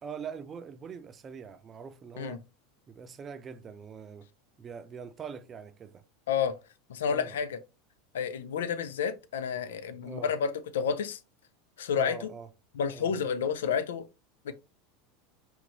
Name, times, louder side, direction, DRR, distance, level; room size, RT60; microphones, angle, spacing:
voice 1, 0.0-2.5 2.9-4.3 4.6-6.0 7.1-7.4 10.0-10.3 11.9-12.5 12.9-13.2, right 6 dB, 30° right, 0.6 m, -43 dB
voice 2, 6.9-7.6 8.1-11.2 11.8-12.3 12.8-14.1 14.4-14.5, left 7 dB, 70° left, 0.5 m, -30 dB
5.1 x 3.2 x 3.1 m
figure-of-eight pair, 80°, 0 cm